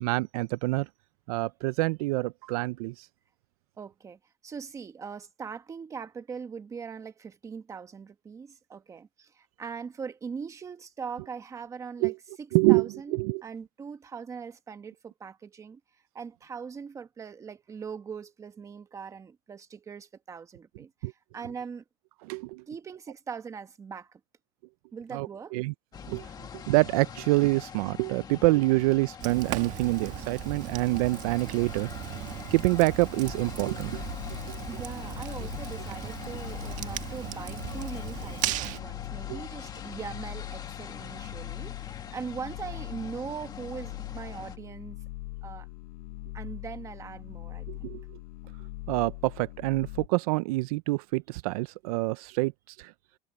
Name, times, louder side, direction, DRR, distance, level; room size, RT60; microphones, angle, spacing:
voice 1, 0.0-0.9 1.3-3.1 12.0-12.1 12.5-13.4 21.0-21.1 22.3-22.6 25.1-25.3 25.5-25.7 26.1-31.9 32.5-34.0 34.5-34.6 39.3-39.4 47.7-48.0 48.9-52.9, right 22 dB, 65° right, 0.5 m, -26 dB
voice 2, 3.8-15.8 16.1-21.8 22.7-24.2 24.9-25.6 34.7-45.0 45.4-45.7 46.3-48.0, right 6 dB, 15° right, 1.3 m, -41 dB
sound 1, 25.9-44.6, left 7 dB, 20° left, 1.6 m, -44 dB
Fire, 29.2-38.8, right 15 dB, 40° right, 1.5 m, -37 dB
sound 2, 33.3-50.1, left 21 dB, 75° left, 1.1 m, -42 dB
supercardioid pair, 170°, 20 cm